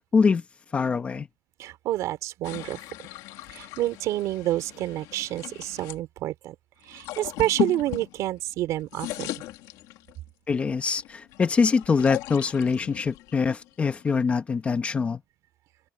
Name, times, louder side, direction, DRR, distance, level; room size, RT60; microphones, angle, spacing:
voice 1, 0.1-0.4 0.7-1.3 10.5-15.2, left 5 dB, 20° left, 1.1 m, -24 dB
voice 2, 1.6-2.8 3.5-6.5 6.9-9.4, right 14 dB, 55° right, 4.1 m, -28 dB
sound 1, 2.4-6.0 6.8-8.5 8.8-10.3 10.8-14.3, left 17 dB, 75° left, 2.0 m, -37 dB
open air
cardioid pair, 170°, 6 cm